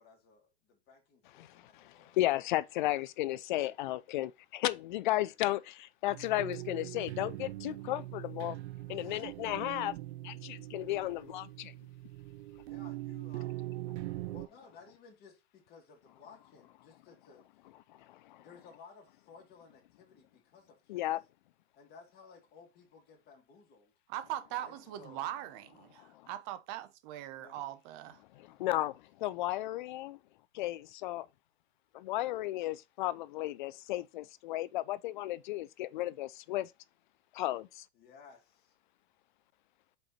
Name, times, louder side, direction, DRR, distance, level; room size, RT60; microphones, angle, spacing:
voice 1, 0.0-2.2 5.1-5.3 8.9-9.3 12.6-13.7 14.3-17.5 18.4-21.0 21.7-23.9 24.5-25.2 27.3-27.6 37.9-38.7, left 5 dB, 30° left, 2.2 m, -57 dB
voice 2, 1.4-8.6 8.9-9.9 10.2-11.7 18.1-18.4 20.9-21.2 26.0-26.1 28.4-30.2 30.5-31.3 31.9-36.7 37.3-37.8, left 15 dB, 45° left, 0.4 m, -34 dB
sound 1, 6.1-14.5, right 16 dB, 75° right, 0.5 m, -42 dB
voice 3, 24.1-28.2, right 13 dB, 35° right, 0.8 m, -41 dB
5.3 x 4.5 x 4.2 m
hypercardioid pair, 140°, 34 cm